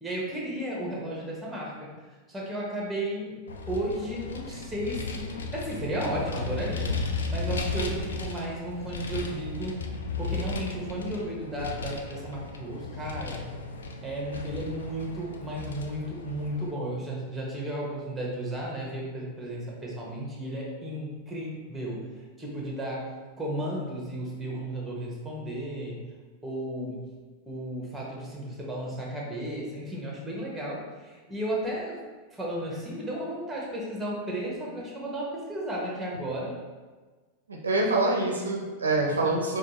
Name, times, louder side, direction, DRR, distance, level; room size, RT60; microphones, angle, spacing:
voice 1, 0.0-1.9 2.3-6.9 7.3-9.8 10.2-13.4 14.0-22.1 22.4-23.1 23.4-26.0 26.4-27.0 27.5-32.0 32.3-36.6 39.1-39.3, right 1 dB, 5° right, -4 dB, 1.1 m, -34 dB
Vehicle, 3.5-16.7, left 3 dB, 70° left, 0.4 m, -35 dB
voice 2, 37.5-39.6, right 2 dB, 75° right, -1 dB, 0.5 m, -25 dB
5.0 x 2.4 x 2.9 m, 1.3 s
figure-of-eight pair, 90°, 0 cm